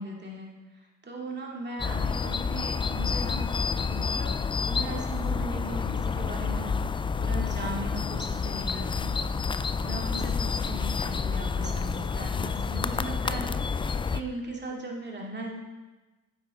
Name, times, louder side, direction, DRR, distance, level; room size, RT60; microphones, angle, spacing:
voice 1, 0.0-4.4 4.7-6.8 7.2-9.2 9.8-15.5, right 2 dB, 30° right, -1 dB, 2.5 m, -38 dB
sound 1, 1.8-14.2, left 5 dB, 15° left, 0.3 m, -29 dB
9.3 x 8.1 x 3.8 m, 1.2 s
hypercardioid pair, 60°, 37 cm